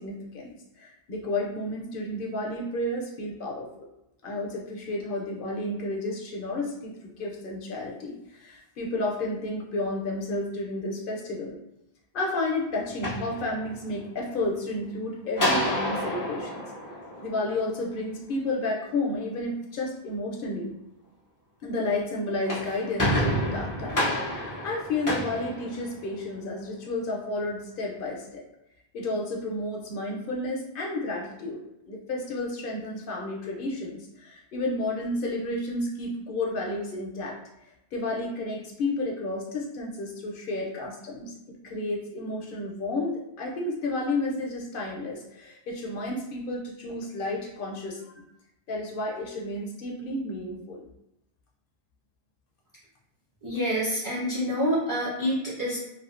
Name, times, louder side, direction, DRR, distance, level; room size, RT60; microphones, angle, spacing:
voice 1, 0.0-3.7 4.2-11.6 12.1-16.6 17.2-20.7 21.6-24.1 24.6-28.4 28.9-31.6 31.9-37.4 37.9-48.2 48.7-50.9, left 2 dB, 65° left, -2 dB, 0.7 m, -31 dB
sound 1, 12.8-14.0 15.3-17.8 22.2-26.3, equal, 25° left, 0.5 m, -29 dB
voice 2, 53.4-55.8, equal, 25° right, -8 dB, 0.6 m, -27 dB
2.5 x 2.3 x 2.4 m, 0.86 s
omnidirectional pair, 1.0 m